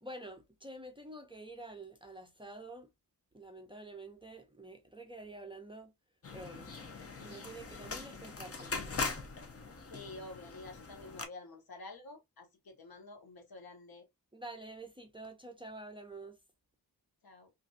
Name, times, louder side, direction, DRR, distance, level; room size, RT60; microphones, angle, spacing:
voice 1, 0.0-2.9 3.3-5.9 6.3-6.7 7.2-8.8 14.3-16.4, right 2 dB, 15° right, 0.5 m, -48 dB
sound 1, 6.2-11.2, left 4 dB, 40° left, 0.7 m, -41 dB
voice 2, 9.9-14.1 17.2-17.5, left 2 dB, 70° left, 0.9 m, -49 dB
3.1 x 2.5 x 2.6 m
wide cardioid pair, 120°, 38 cm